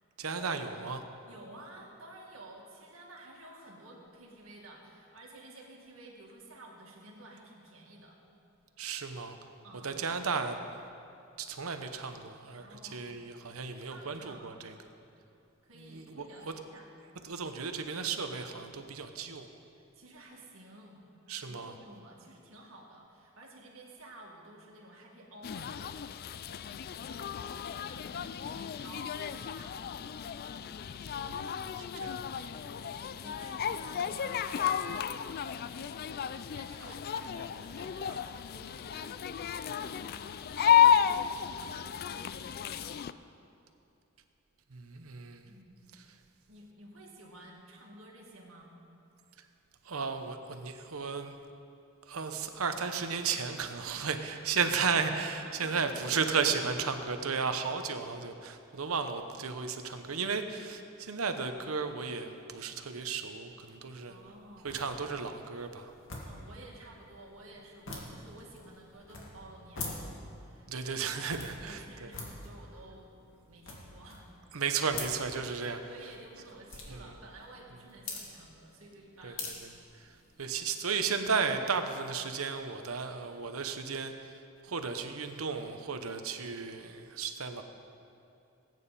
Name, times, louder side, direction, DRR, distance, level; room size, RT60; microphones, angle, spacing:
voice 1, 0.2-1.0 8.8-9.4 9.8-10.6 11.4-14.7 15.8-16.5 17.2-19.5 21.3-21.7 31.1-32.4 44.7-45.5 49.4-49.5 49.8-51.3 52.1-64.2 64.6-65.9 70.7-72.1 74.5-75.8 76.9-77.1 79.2-79.7 79.9-84.1 84.6-87.6, right 5 dB, 85° right, 7 dB, 0.9 m, -34 dB
voice 2, 1.2-8.2 9.6-10.0 12.6-13.0 13.6-14.5 15.6-16.9 19.7-21.0 21.4-30.1 32.5-36.2 36.5-43.1 45.4-45.8 46.0-46.1 46.5-48.7 49.2-49.3 53.9-54.0 55.4-56.6 64.1-64.7 66.2-71.3 71.6-73.1 73.5-74.3 74.6-75.0 75.9-79.5, right 1 dB, 70° right, -1 dB, 2.3 m, -52 dB
sound 1, 25.4-43.1, left 8 dB, 45° left, 0.3 m, -32 dB
sound 2, 64.1-80.6, left 3 dB, 65° left, 2.1 m, -46 dB
20.0 x 9.2 x 4.2 m, 2.7 s
head